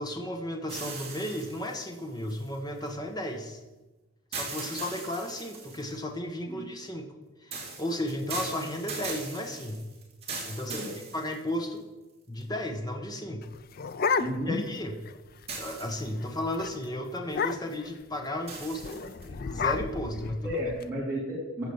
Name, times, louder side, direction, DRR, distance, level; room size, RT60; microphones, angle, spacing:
voice 1, 0.0-3.6 4.3-7.1 7.4-9.8 10.5-11.8 12.3-13.5 14.0-14.2 14.5-14.9 15.5-20.6, left 1 dB, 20° left, 3 dB, 1.2 m, -34 dB
sound 1, 0.7-2.9 4.3-5.9 7.5-11.8 12.4-12.5 15.5-16.3 18.5-19.2, right 4 dB, 25° right, 2.7 m, -40 dB
sound 2, 13.4-14.7 15.1-15.2 15.4-15.7 16.1-16.3 16.6-16.7 17.3-17.9 18.8-20.8, left 5 dB, 45° left, 0.4 m, -31 dB
voice 2, 14.2-14.6 20.4-21.7, equal, 10° right, -8 dB, 3.4 m, -32 dB
14.5 x 5.1 x 7.1 m, 1.1 s
head